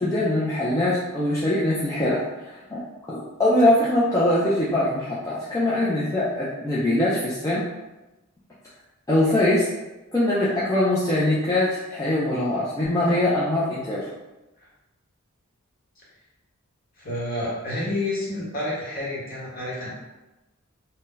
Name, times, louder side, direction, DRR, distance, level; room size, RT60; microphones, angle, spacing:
voice 1, 0.0-7.6 9.1-9.7 10.1-14.0, left 1 dB, 15° left, -8 dB, 0.4 m, -22 dB
voice 2, 17.0-19.9, left 1 dB, 40° left, -6 dB, 1.1 m, -29 dB
2.7 x 2.1 x 3.7 m, 1.0 s
head